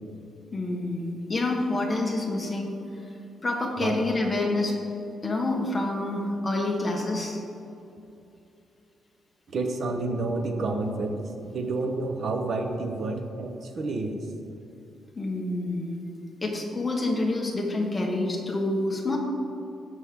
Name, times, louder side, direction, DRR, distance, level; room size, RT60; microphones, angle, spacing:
voice 1, 0.5-2.8 3.4-4.8 5.2-7.4 15.1-15.9 16.4-19.2, left 2 dB, 15° left, -1 dB, 1.4 m, -27 dB
voice 2, 9.5-11.2 11.5-14.2, right 3 dB, 50° right, 4 dB, 1.1 m, -29 dB
16.5 x 6.3 x 3.7 m, 2.7 s
wide cardioid pair, 170°, 0 cm